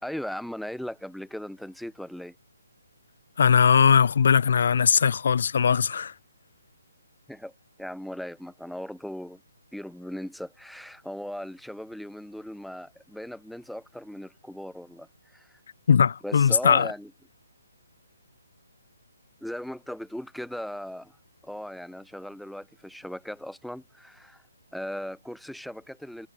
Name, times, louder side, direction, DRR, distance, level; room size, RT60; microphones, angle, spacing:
voice 1, 0.0-2.3 7.3-7.5 7.8-9.4 9.7-15.6 16.2-17.1 19.4-21.2 21.4-24.4 24.7-26.3, equal, ahead, 0.6 m, -38 dB
voice 2, 3.4-6.1 15.9-16.9, left 6 dB, 60° left, 0.4 m, -20 dB
hypercardioid pair, 150°, 0 cm